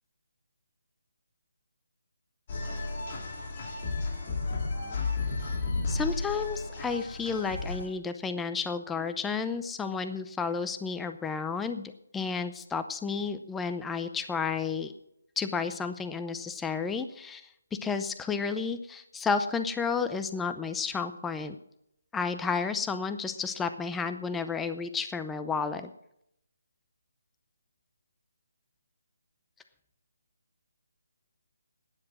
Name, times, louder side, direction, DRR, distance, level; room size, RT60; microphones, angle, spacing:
sound 1, 2.5-7.9, left 3 dB, 40° left, 3.0 m, -33 dB
voice 1, 5.9-14.9 15.4-17.4 17.8-21.6 22.1-25.9, left 5 dB, 5° left, 9 dB, 0.6 m, -32 dB
12.5 x 9.8 x 6.2 m, 0.76 s
figure-of-eight pair, 155°, 0 cm